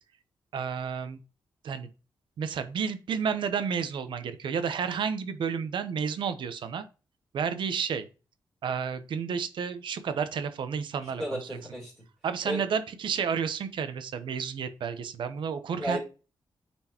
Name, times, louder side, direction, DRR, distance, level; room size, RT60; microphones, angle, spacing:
voice 1, 0.5-1.2 1.6-1.9 2.4-6.8 7.3-8.1 8.6-11.2 12.2-16.0, right 6 dB, 80° right, 10 dB, 0.8 m, -31 dB
voice 2, 11.0-11.9 12.4-12.6 15.8-16.0, equal, 5° left, -3 dB, 3.0 m, -33 dB
8.8 x 4.5 x 3.0 m, 0.32 s
wide cardioid pair, 130°, 8 cm